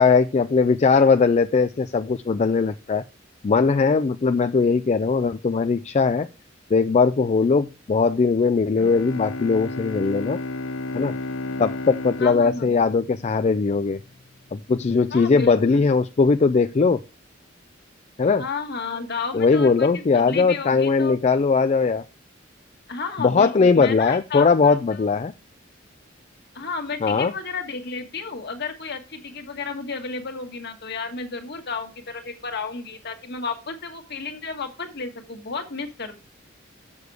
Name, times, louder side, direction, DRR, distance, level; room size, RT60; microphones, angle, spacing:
voice 1, 0.0-3.0 3.4-6.3 6.7-10.4 10.9-11.1 11.6-14.0 14.5-17.0 18.2-18.4 19.3-22.0 23.2-25.3 27.0-27.3, left 4 dB, 35° left, 10 dB, 0.4 m, -19 dB
Bowed string instrument, 8.8-13.7, left 2 dB, 85° left, 0.7 m, -33 dB
voice 2, 12.2-12.7 15.1-15.6 18.4-21.2 22.9-25.1 26.5-36.2, left 4 dB, 55° left, 6 dB, 1.6 m, -32 dB
6.9 x 6.6 x 4.8 m, 0.31 s
head